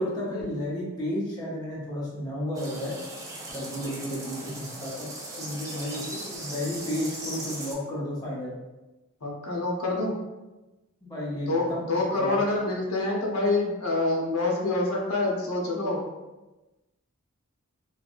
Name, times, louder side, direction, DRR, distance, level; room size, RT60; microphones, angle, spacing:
voice 1, 0.0-2.9 3.5-5.1 5.4-8.5 11.0-11.8 12.2-12.4, left 1 dB, 20° left, -7 dB, 0.9 m, -32 dB
sound 1, 2.5-7.7, right 1 dB, 15° right, 0.4 m, -38 dB
voice 2, 5.9-6.2 9.2-10.1 11.3-16.0, left 2 dB, 80° left, -1 dB, 0.7 m, -27 dB
3.2 x 2.3 x 2.5 m, 1.1 s
head